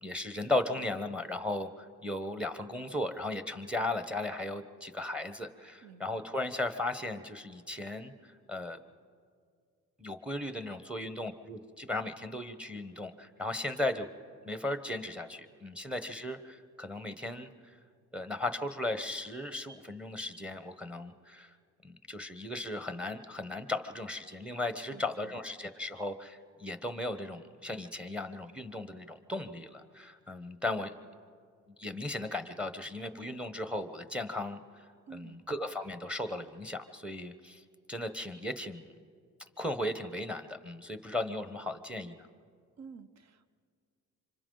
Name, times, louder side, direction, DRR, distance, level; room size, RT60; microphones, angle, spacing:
voice 1, 0.0-8.8 10.0-14.1 14.4-17.8 18.1-21.5 21.8-30.9 31.8-38.9 39.6-42.3, left 2 dB, 5° right, 10 dB, 1.0 m, -36 dB
voice 2, 5.8-6.3 10.8-10.9 24.9-25.3 35.1-35.4 42.8-43.5, right 6 dB, 60° right, 12 dB, 1.0 m, -51 dB
27.0 x 25.5 x 3.9 m, 2.2 s
cardioid pair, 90°, 30 cm